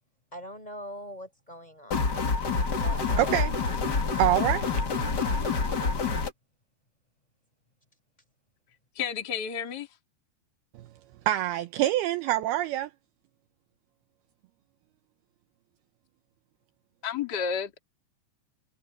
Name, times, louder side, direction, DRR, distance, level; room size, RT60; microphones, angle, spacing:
voice 1, 0.3-2.3 2.7-3.5 4.1-4.4 5.7-5.9, equal, 10° left, 4.3 m, -43 dB
sound 1, 1.9-6.3, left 4 dB, 70° left, 0.9 m, -27 dB
voice 2, 3.2-3.5 4.2-4.7 10.8-10.9 11.3-12.9, right 14 dB, 80° right, 2.3 m, -25 dB
voice 3, 8.9-9.9 17.0-17.8, left 7 dB, 30° left, 2.1 m, -31 dB
omnidirectional pair, 5.4 m